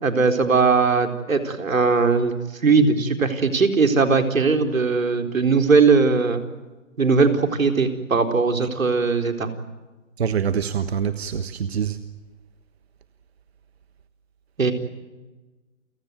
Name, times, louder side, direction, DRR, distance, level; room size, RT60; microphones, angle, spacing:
voice 1, 0.0-2.4 2.6-6.4 7.0-9.5 14.6-14.7, right 4 dB, 85° right, 6 dB, 4.2 m, -19 dB
voice 2, 10.2-12.0, right 7 dB, 50° right, 11 dB, 1.4 m, -25 dB
29.5 x 18.0 x 9.3 m, 1.2 s
hypercardioid pair, 160°, 39 cm